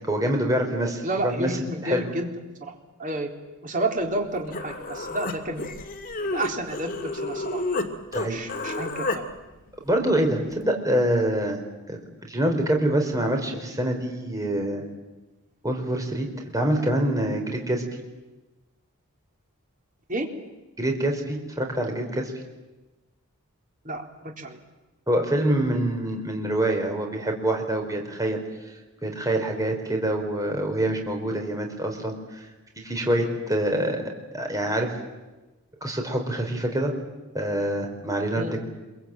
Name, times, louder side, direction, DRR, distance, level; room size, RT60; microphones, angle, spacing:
voice 1, 0.0-2.0 8.1-8.4 9.8-11.6 11.9-14.8 15.6-16.3 16.5-18.0 20.8-22.3 25.1-28.4 29.0-32.5 32.8-34.0 34.3-34.9 35.8-36.9 37.3-38.6, right 1 dB, 15° right, 2 dB, 4.6 m, -25 dB
voice 2, 1.0-2.3 2.6-2.7 3.0-3.3 3.6-5.7 6.3-7.6 8.3-9.0 20.1-20.3 23.8-24.6 38.4-38.6, right 2 dB, 35° right, 3 dB, 3.7 m, -30 dB
Human voice, 4.2-4.3 4.5-7.9 8.1-9.2, left 2 dB, 40° left, 2.4 m, -30 dB
27.5 x 23.0 x 9.1 m, 1.1 s
head